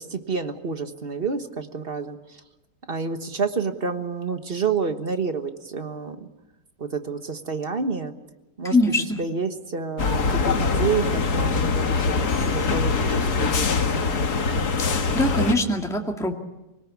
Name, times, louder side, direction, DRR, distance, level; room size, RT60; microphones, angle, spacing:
voice 1, 0.0-2.4 2.9-6.3 6.8-8.1 8.6-13.9, right 5 dB, 40° right, 7 dB, 1.5 m, -29 dB
voice 2, 8.7-9.2 14.8-16.3, left 1 dB, ahead, 1 dB, 2.0 m, -23 dB
sound 1, 10.0-15.6, left 4 dB, 80° left, 2.1 m, -23 dB
25.5 x 18.5 x 8.5 m, 1.0 s
omnidirectional pair, 1.7 m